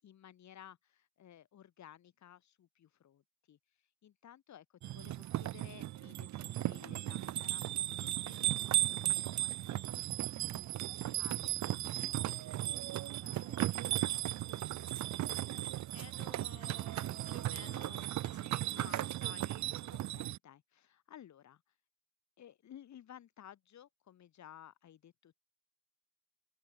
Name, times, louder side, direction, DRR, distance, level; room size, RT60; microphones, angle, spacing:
voice 1, 0.0-3.6 4.0-10.4 11.2-14.4 19.4-19.5 19.9-21.6 22.4-25.4, left 10 dB, 65° left, 6.4 m, -57 dB
sound 1, 4.8-20.4, right 14 dB, 65° right, 0.8 m, -36 dB
voice 2, 15.9-19.5, left 9 dB, 50° left, 1.7 m, -55 dB
open air
cardioid pair, 90°, 30 cm